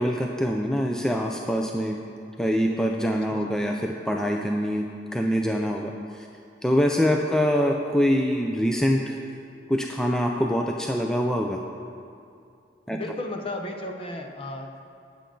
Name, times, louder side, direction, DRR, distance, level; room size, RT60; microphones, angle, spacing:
voice 1, 0.0-2.0 2.4-6.3 6.6-9.2 9.7-11.6 12.9-13.0, equal, 5° left, 1 dB, 0.4 m, -24 dB
voice 2, 12.9-14.8, left 1 dB, 30° left, 3 dB, 0.8 m, -34 dB
17.0 x 6.7 x 3.9 m, 2.5 s
head